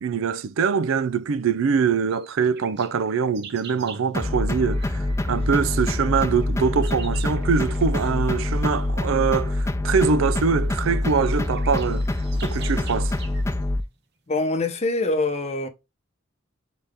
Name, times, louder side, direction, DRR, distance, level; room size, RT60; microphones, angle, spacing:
voice 1, 0.0-12.0 12.4-13.2, right 5 dB, 75° right, 0.4 m, -23 dB
sound 1, 2.1-4.1 6.2-8.1 10.0-10.1 10.6-10.7 10.9-13.6, right 6 dB, 55° right, 0.9 m, -45 dB
sound 2, 3.4-13.9, right 1 dB, 30° right, 1.1 m, -45 dB
sound 3, 4.1-13.8, left 2 dB, 15° left, 0.3 m, -25 dB
voice 2, 14.3-15.7, left 2 dB, 35° left, 0.7 m, -24 dB
4.1 x 3.7 x 3.4 m
head